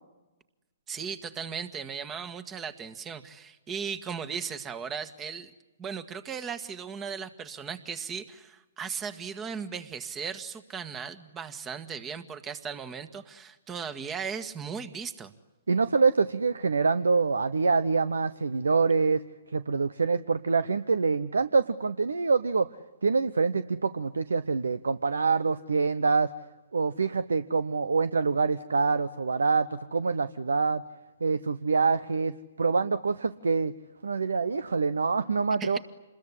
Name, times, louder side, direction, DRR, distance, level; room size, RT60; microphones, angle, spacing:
voice 1, 0.9-5.5 5.8-15.3 35.6-35.8, right 6 dB, 20° right, 11 dB, 1.7 m, -37 dB
voice 2, 15.7-19.2 19.5-22.7 23.0-26.3 26.7-30.8 31.2-33.7 34.0-35.8, right 4 dB, 80° right, 15 dB, 0.9 m, -25 dB
27.5 x 21.5 x 9.9 m, 1.1 s
hypercardioid pair, 130°, 0 cm